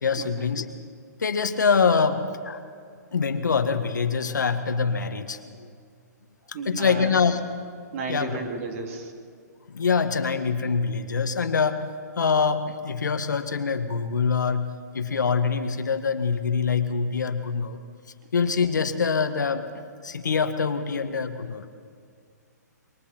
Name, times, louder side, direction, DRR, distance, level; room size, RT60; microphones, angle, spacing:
voice 1, 0.0-0.6 1.2-2.6 3.1-5.5 6.5-7.4 8.1-8.4 9.7-11.8 12.2-17.8 18.3-21.7, left 5 dB, 80° left, 8 dB, 1.7 m, -24 dB
voice 2, 6.5-7.3 7.9-9.1, right 4 dB, 50° right, 2 dB, 3.5 m, -34 dB
28.0 x 23.5 x 4.5 m, 2.2 s
hypercardioid pair, 135°, 10 cm